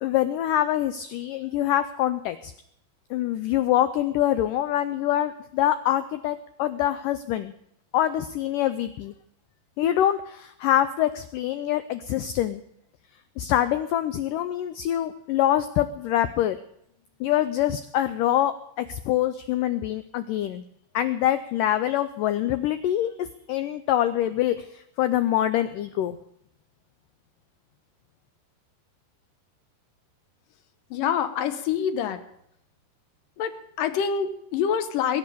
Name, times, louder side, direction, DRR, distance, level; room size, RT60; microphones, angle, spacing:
voice 1, 0.0-2.5 3.1-7.5 7.9-9.1 9.8-12.6 13.4-16.6 17.2-20.6 20.9-26.2, left 12 dB, 85° left, 12 dB, 1.9 m, -25 dB
voice 2, 30.9-32.2 33.4-35.2, left 8 dB, 65° left, 11 dB, 2.6 m, -26 dB
21.0 x 9.6 x 6.9 m, 0.74 s
omnidirectional pair, 4.7 m